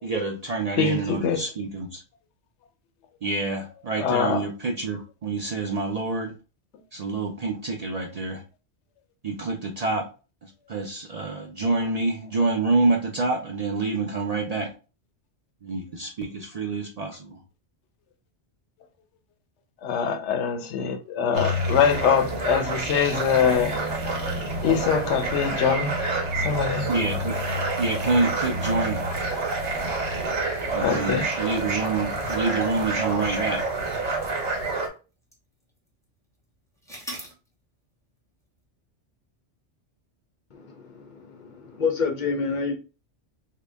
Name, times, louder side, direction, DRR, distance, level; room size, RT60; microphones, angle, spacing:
voice 1, 0.0-2.0 3.2-6.3 6.9-8.4 9.2-10.1 10.7-14.7 15.6-17.4 26.9-27.3 27.8-29.0 30.7-33.6, right 3 dB, 50° right, 0.5 m, -27 dB
voice 2, 0.8-1.4 4.0-4.4 19.8-23.8 24.6-25.9 26.4-26.9 30.8-31.3, left 7 dB, 80° left, 0.9 m, -23 dB
sound 1, 21.3-34.9, right 2 dB, 75° right, 1.2 m, -28 dB
sound 2, 26.5-34.8 35.3-35.4 36.9-37.3, equal, 5° left, 0.7 m, -43 dB
voice 3, 40.5-42.8, left 5 dB, 50° left, 0.7 m, -28 dB
3.8 x 2.1 x 3.3 m
omnidirectional pair, 1.2 m